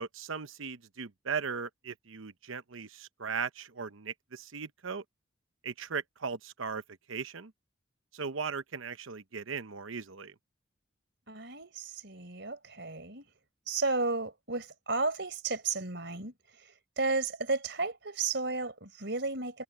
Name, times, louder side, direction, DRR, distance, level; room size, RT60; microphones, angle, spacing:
voice 1, 0.0-5.0 5.6-6.8 7.1-7.5 8.1-10.3, right 5 dB, 80° right, 0.9 m, -38 dB
voice 2, 11.3-13.3 13.7-19.6, right 3 dB, 60° right, 4.5 m, -33 dB
head